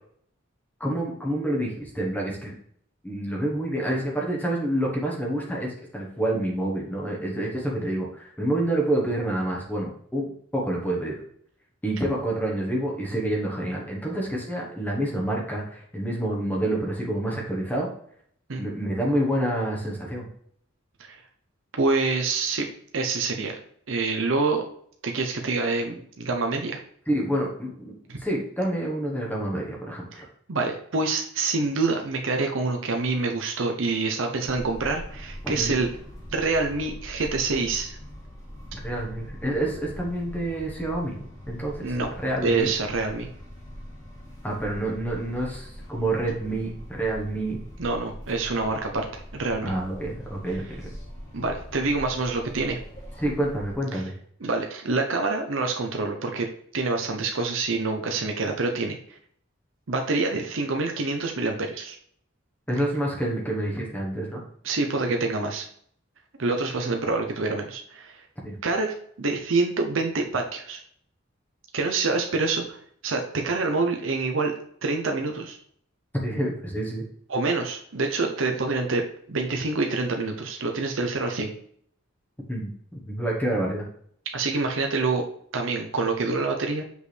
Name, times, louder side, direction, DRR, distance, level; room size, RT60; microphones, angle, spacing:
voice 1, 0.8-2.5 3.0-11.2 11.8-17.9 18.6-20.2 27.1-30.3 35.6-35.7 38.8-41.2 41.5-41.9 42.2-42.7 44.4-47.6 49.6-50.9 53.2-54.1 62.7-64.4 68.4-68.6 76.2-77.0 82.5-83.8, right 1 dB, 10° left, -2 dB, 1.2 m, -28 dB
voice 2, 21.8-22.7 22.9-23.6 23.9-24.7 25.0-26.8 28.1-28.2 30.5-35.9 36.3-38.0 41.8-42.1 42.4-43.3 47.8-49.7 51.3-52.8 53.9-54.0 54.4-56.5 56.7-59.0 59.9-62.0 64.6-65.7 66.4-68.2 68.6-70.8 71.7-72.8 73.0-74.5 74.8-75.6 77.3-79.0 79.3-81.5 84.3-85.2 85.5-86.8, right 3 dB, 70° right, 3 dB, 0.8 m, -26 dB
sound 1, 34.4-53.8, equal, 35° left, 2.2 m, -42 dB
6.4 x 5.1 x 3.3 m, 0.63 s
head